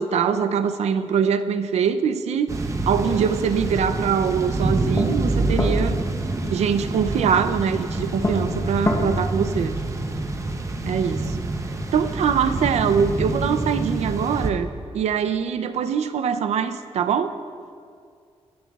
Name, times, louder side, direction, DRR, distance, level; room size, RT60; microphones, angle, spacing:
voice 1, 0.0-2.5 2.9-6.0 6.5-9.7 10.8-11.4 11.9-17.4, right 7 dB, 85° right, 10 dB, 0.5 m, -23 dB
sound 1, 2.5-14.5, right 2 dB, 30° right, 0.7 m, -27 dB
sound 2, 3.8-3.9 4.3-9.1, left 1 dB, 25° left, 0.9 m, -29 dB
voice 2, 9.6-10.3, left 2 dB, 50° left, -1 dB, 3.0 m, -48 dB
17.0 x 11.0 x 2.4 m, 2.2 s
wide cardioid pair, 135°, 11 cm